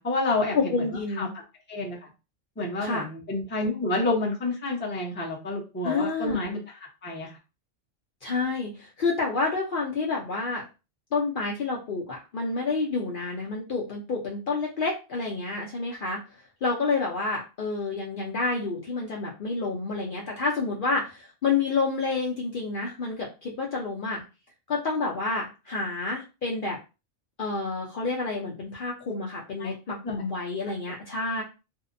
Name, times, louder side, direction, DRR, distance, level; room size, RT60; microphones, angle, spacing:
voice 1, 0.0-0.8 1.2-1.3 1.7-2.1 2.6-7.4 29.6-29.7 30.0-30.3, left 2 dB, 15° left, -2 dB, 0.5 m, -29 dB
voice 2, 0.5-1.3 2.8-3.0 5.8-6.4 8.2-10.6 11.1-16.2 16.6-24.2 24.7-26.8 27.4-31.4, left 4 dB, 60° left, -3 dB, 0.6 m, -29 dB
2.7 x 2.0 x 2.5 m, 0.29 s
omnidirectional pair, 1.2 m